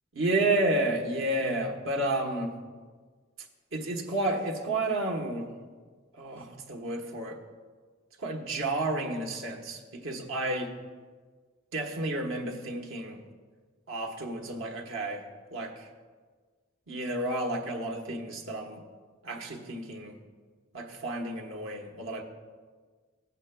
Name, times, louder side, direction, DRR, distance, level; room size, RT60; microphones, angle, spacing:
voice 1, 0.1-2.5 3.7-5.5 6.1-7.4 8.2-10.7 11.7-13.2 13.9-15.2 15.5-15.9 16.9-18.8 19.2-20.2 20.7-22.2, right 2 dB, 70° right, 1 dB, 1.2 m, -31 dB
16.5 x 8.1 x 2.2 m, 1.5 s
head